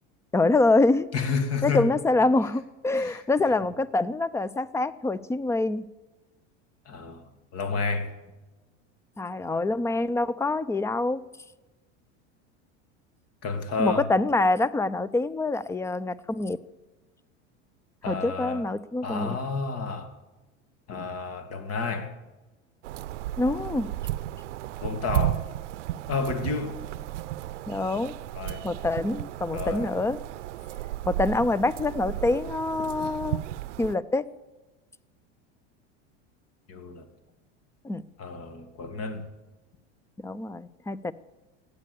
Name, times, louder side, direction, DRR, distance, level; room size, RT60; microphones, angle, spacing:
voice 1, 0.3-1.1 1.6-5.9 9.2-11.2 13.8-16.6 18.1-19.4 23.4-23.9 27.7-28.1 28.6-30.2 31.1-33.4 33.8-34.2 37.8-38.1 40.2-41.1, left 2 dB, 10° left, 0.4 m, -25 dB
voice 2, 1.1-1.9 2.9-3.2 6.9-8.1 13.4-14.1 18.0-18.7 19.0-20.2 20.9-22.2 24.8-25.5 26.1-26.8 28.4-28.7 29.5-30.0 33.0-33.1 36.7-37.1 38.2-39.3, left 4 dB, 45° left, 2.1 m, -31 dB
sound 1, 22.8-33.9, right 14 dB, 90° right, 0.6 m, -34 dB
15.5 x 9.5 x 6.9 m
hypercardioid pair, 100°, 35 cm